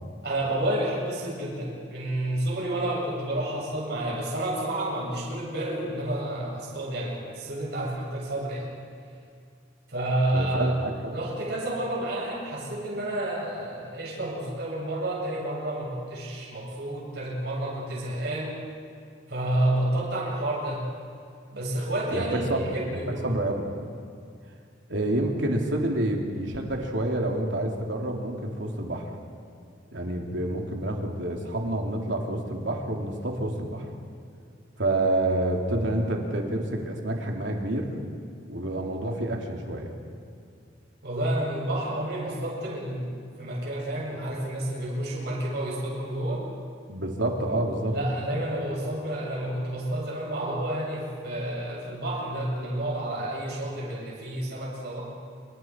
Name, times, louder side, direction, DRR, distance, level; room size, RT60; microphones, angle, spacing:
voice 1, 0.2-8.7 9.9-10.7 11.1-18.6 19.3-20.8 21.5-23.3 41.0-43.1 43.4-46.4 47.9-55.0, right 1 dB, 60° right, -4 dB, 7.8 m, -30 dB
voice 2, 10.3-11.1 22.1-23.0 23.2-23.7 24.9-29.0 29.9-33.9 34.8-37.9 38.5-39.9 46.9-47.9, right 1 dB, 75° right, 1 dB, 3.2 m, -28 dB
27.5 x 25.0 x 4.7 m, 2.4 s
head